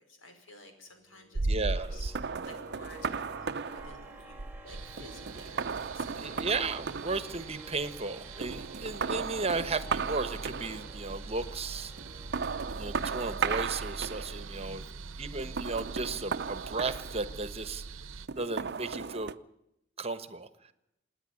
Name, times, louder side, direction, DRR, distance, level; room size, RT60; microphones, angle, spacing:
voice 1, 0.0-6.4 14.5-15.3, left 1 dB, 80° left, 5 dB, 5.2 m, -54 dB
sound 1, 0.9-13.9, right 1 dB, 10° right, 1.9 m, -53 dB
sound 2, 1.3-8.1 8.4-11.1 12.0-14.6 15.4-17.6 18.3-19.3, right 5 dB, 60° right, 0.7 m, -35 dB
voice 2, 1.5-2.1 6.1-11.9 12.7-14.8 15.2-17.8 18.4-19.3 20.0-20.5, right 3 dB, 30° right, 13 dB, 1.2 m, -35 dB
sound 3, 4.7-18.3, right 4 dB, 90° right, 0.9 m, -44 dB
27.0 x 10.0 x 9.8 m, 0.83 s
head